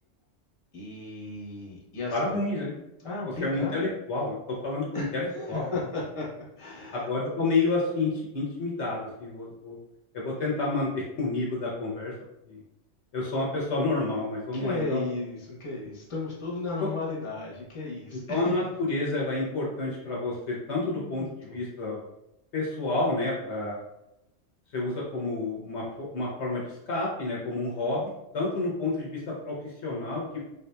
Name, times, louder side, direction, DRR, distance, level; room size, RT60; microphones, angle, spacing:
voice 1, 0.7-2.4 3.0-3.8 4.9-6.3 6.6-7.1 14.5-18.5 20.7-21.6, left 3 dB, 25° left, -5 dB, 1.0 m, -35 dB
voice 2, 2.1-2.8 3.4-5.7 6.9-9.8 10.1-12.1 12.5-12.6 13.1-15.0 16.8-16.9 18.3-21.2 21.5-22.0 22.5-23.8 24.7-30.4, left 2 dB, 65° left, -3 dB, 1.0 m, -29 dB
3.9 x 2.7 x 2.2 m, 0.86 s
omnidirectional pair, 1.3 m